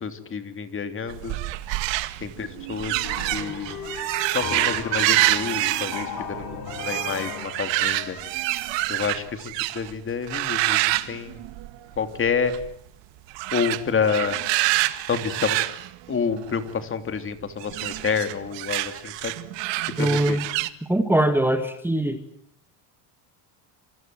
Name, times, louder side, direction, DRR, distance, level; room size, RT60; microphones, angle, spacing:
voice 1, 0.0-1.3 2.2-3.0 3.3-3.8 4.3-8.2 8.9-9.4 9.7-11.4 12.0-12.5 13.5-14.4 15.1-15.6 16.1-19.3 20.0-20.4, left 6 dB, 25° left, 9 dB, 3.1 m, -28 dB
sound 1, 1.1-9.9 10.3-12.0 12.2-12.7 13.3-16.7 17.6-20.7, right 18 dB, 65° right, 2.0 m, -27 dB
sound 2, 3.0-8.3, left 6 dB, 50° left, 7.2 m, -36 dB
voice 2, 20.0-20.5 20.9-22.2, right 1 dB, 5° right, 8 dB, 1.8 m, -22 dB
27.5 x 27.0 x 7.7 m, 0.66 s
cardioid pair, 135°, 46 cm